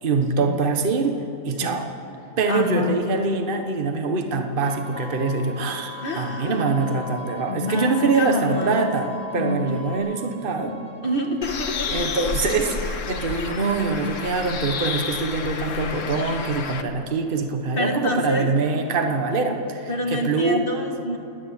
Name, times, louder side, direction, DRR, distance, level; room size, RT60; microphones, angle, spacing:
voice 1, 0.0-1.2 1.4-1.9 2.4-10.8 11.9-20.8, right 3 dB, 40° right, 5 dB, 1.4 m, -24 dB
voice 2, 2.5-3.0 6.0-6.7 7.5-8.9 9.4-9.8 11.0-12.1 17.8-18.5 19.9-21.2, left 2 dB, 40° left, 3 dB, 1.9 m, -27 dB
Bowed string instrument, 4.6-12.6, right 3 dB, 60° right, 2.8 m, -44 dB
sound 1, 5.0-10.0, left 3 dB, 10° right, 4.5 m, -40 dB
Bird, 11.4-16.8, left 5 dB, 60° left, 1.4 m, -30 dB
27.5 x 9.5 x 9.9 m, 2.8 s
omnidirectional pair, 1.5 m